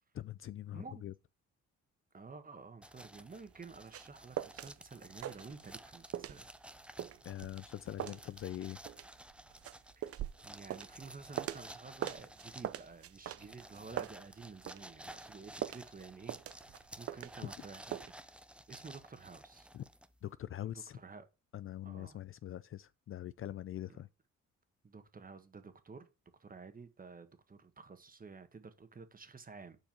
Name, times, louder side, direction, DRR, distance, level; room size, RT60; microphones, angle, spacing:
voice 1, 0.1-1.1 7.2-8.8 19.7-19.8 20.2-21.0 21.5-24.1, left 12 dB, 45° left, 0.4 m, -43 dB
voice 2, 0.7-1.0 2.1-6.5 9.9-10.1 10.4-18.3 18.7-19.7 20.6-21.3 21.8-22.2 23.9-24.0 24.8-26.1 26.4-29.8, right 4 dB, 30° right, 1.5 m, -51 dB
sound 1, 2.8-20.3, right 1 dB, 5° right, 0.6 m, -54 dB
sound 2, 3.5-4.7 5.0-5.9 6.1-11.7 12.0-14.8 15.1-17.6 17.9-18.1, right 11 dB, 50° right, 0.6 m, -42 dB
7.6 x 4.6 x 5.7 m
cardioid pair, 90°, 30 cm